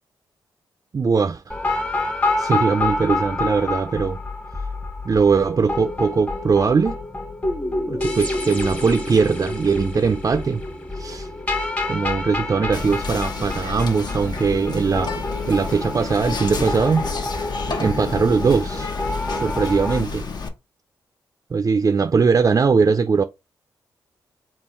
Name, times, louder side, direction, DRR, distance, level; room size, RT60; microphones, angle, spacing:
voice 1, 0.9-1.5 2.4-4.2 5.0-7.0 7.9-10.6 10.9-11.3 11.9-17.1 17.8-18.9 19.4-20.2 21.5-23.2, right 5 dB, 40° right, 0.4 m, -20 dB
sound 1, 1.5-20.0, left 2 dB, 15° left, 1.1 m, -28 dB
Whispering, 12.7-20.5, left 4 dB, 50° left, 0.9 m, -30 dB
3.7 x 2.3 x 4.2 m
supercardioid pair, 40°, 9 cm